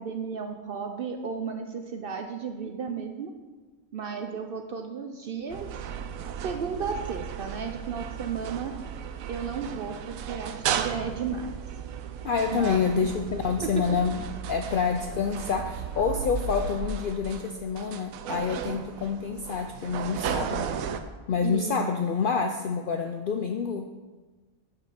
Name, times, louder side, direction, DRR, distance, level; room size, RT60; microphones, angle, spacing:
voice 1, 0.0-3.3 3.9-5.7 6.4-8.8 9.3-11.6 12.5-13.1 13.6-13.7 21.4-21.8, right 6 dB, 60° right, 5 dB, 0.6 m, -34 dB
sound 1, 5.5-21.0, right 7 dB, 90° right, 1.0 m, -35 dB
voice 2, 12.2-20.7 21.3-23.9, left 6 dB, 70° left, 5 dB, 0.5 m, -28 dB
5.8 x 5.7 x 6.9 m, 1.3 s
omnidirectional pair, 1.4 m